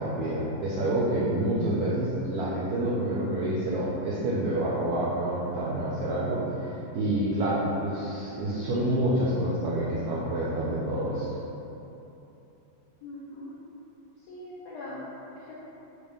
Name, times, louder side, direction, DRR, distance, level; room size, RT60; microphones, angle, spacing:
voice 1, 0.0-11.3, right 1 dB, 80° right, -7 dB, 0.8 m, -28 dB
voice 2, 13.0-13.6 14.2-15.5, left 1 dB, 75° left, -7 dB, 0.9 m, -41 dB
4.6 x 2.2 x 3.4 m, 3.0 s
omnidirectional pair, 2.2 m